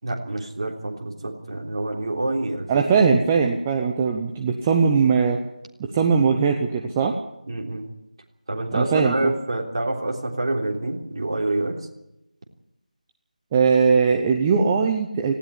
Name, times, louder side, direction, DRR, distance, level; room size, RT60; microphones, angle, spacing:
voice 1, 0.0-3.0 7.5-7.9 8.5-11.9, right 2 dB, 35° right, 1 dB, 3.5 m, -27 dB
voice 2, 2.7-5.4 5.8-7.1 8.7-9.3 13.5-15.3, right 5 dB, 10° right, 3 dB, 0.7 m, -20 dB
18.5 x 17.0 x 10.0 m, 0.86 s
figure-of-eight pair, 165°, 5 cm